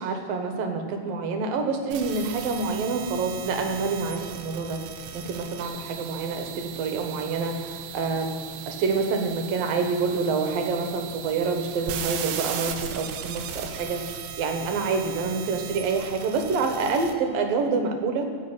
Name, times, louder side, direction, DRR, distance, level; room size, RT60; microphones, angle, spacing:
voice 1, 0.0-4.8 5.1-8.3 8.7-14.0 14.4-18.3, right 4 dB, 70° right, 4 dB, 2.8 m, -27 dB
sound 1, 1.9-17.1, right 8 dB, 85° right, 2.9 m, -37 dB
15.5 x 5.3 x 9.9 m, 2.2 s
omnidirectional pair, 4.5 m